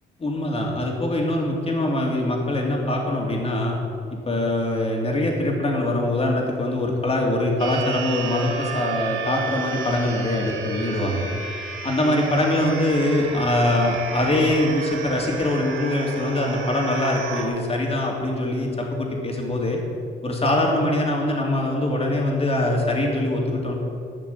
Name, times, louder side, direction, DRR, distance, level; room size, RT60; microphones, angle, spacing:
voice 1, 0.2-3.7 4.3-11.2 11.8-19.8 20.2-23.7, left 1 dB, 30° left, 0 dB, 2.8 m, -23 dB
sound 1, 7.6-17.5, right 5 dB, 90° right, 1.6 m, -33 dB
12.5 x 5.9 x 8.3 m, 2.3 s
cardioid pair, 90°, 20 cm